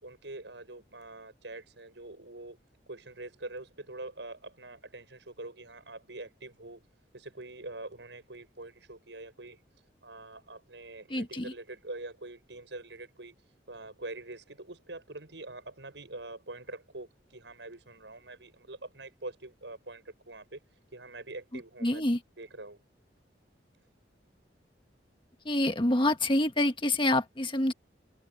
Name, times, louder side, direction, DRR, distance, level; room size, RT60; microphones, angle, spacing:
voice 1, 0.0-2.6 2.9-6.8 7.1-9.6 10.0-13.3 13.7-20.6 20.9-22.0 22.4-22.8, right 2 dB, 85° right, 6.3 m, -44 dB
voice 2, 11.1-11.4 21.8-22.2 25.4-27.7, left 1 dB, 30° left, 1.4 m, -26 dB
head